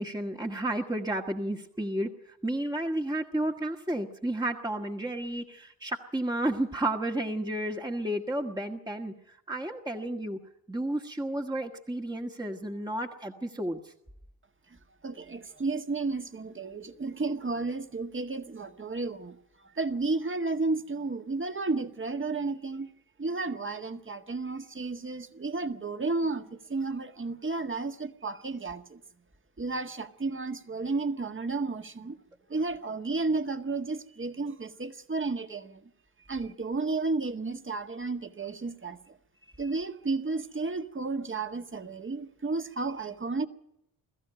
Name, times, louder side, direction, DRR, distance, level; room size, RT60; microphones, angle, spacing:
voice 1, 0.0-2.1 2.4-9.1 9.5-10.4 10.7-13.8, right 1 dB, 10° right, 1.6 m, -32 dB
voice 2, 15.0-19.4 19.6-22.9 23.2-29.0 29.6-32.2 32.5-35.8 36.3-39.1 39.6-43.5, right 3 dB, 25° right, 1.6 m, -32 dB
21.0 x 14.5 x 9.1 m
hypercardioid pair, 45°, 50 cm